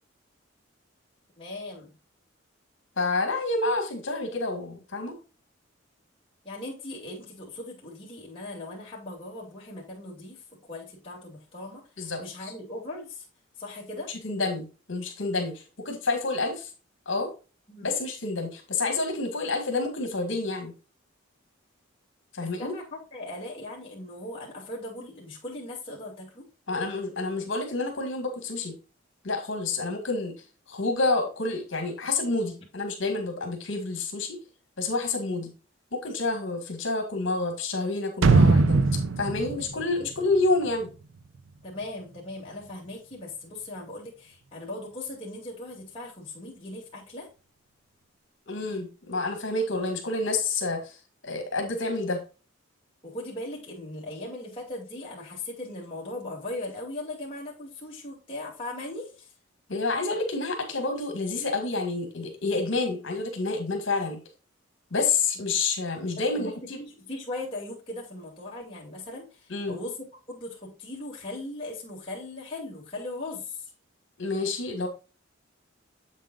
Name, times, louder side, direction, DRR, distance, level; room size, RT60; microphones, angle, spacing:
voice 1, 1.4-1.9 6.4-10.4 10.7-13.2 13.6-14.1 17.7-17.9 22.4-26.5 41.6-47.3 53.0-59.3 66.2-70.0 70.3-73.6, left 2 dB, 25° left, -5 dB, 2.5 m, -39 dB
voice 2, 3.0-5.2 12.0-12.5 14.1-16.7 17.1-17.3 17.8-20.7 22.3-22.7 26.7-28.7 29.2-30.3 30.7-34.4 34.8-35.5 35.9-38.8 39.2-40.9 48.5-51.0 51.2-52.2 59.7-64.2 64.9-66.8 69.5-69.8 74.2-74.9, left 3 dB, 70° left, 4 dB, 1.9 m, -28 dB
sound 1, 38.2-41.0 41.3-41.4, right 3 dB, 70° right, 0.5 m, -21 dB
7.7 x 7.3 x 2.4 m, 0.32 s
head